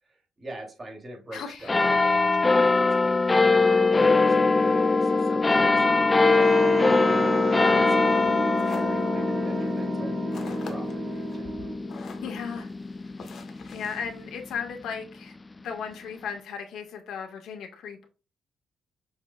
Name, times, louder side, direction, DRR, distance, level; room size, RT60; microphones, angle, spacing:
voice 1, 0.0-10.2 10.4-11.6, right 1 dB, 25° right, 3.0 m, -44 dB
voice 2, 1.3-1.7 12.2-12.7 13.7-15.3 15.6-18.0, left 6 dB, 85° left, 1.7 m, -35 dB
sound 1, 1.7-14.6 15.2-15.3, left 3 dB, 20° left, 0.3 m, -22 dB
Wind instrument woodwind instrument, 6.2-12.0, right 7 dB, 55° right, 1.2 m, -34 dB
sound 2, 8.1-14.9, left 4 dB, 55° left, 1.3 m, -47 dB
6.6 x 6.0 x 2.4 m
cardioid pair, 115°, 0 cm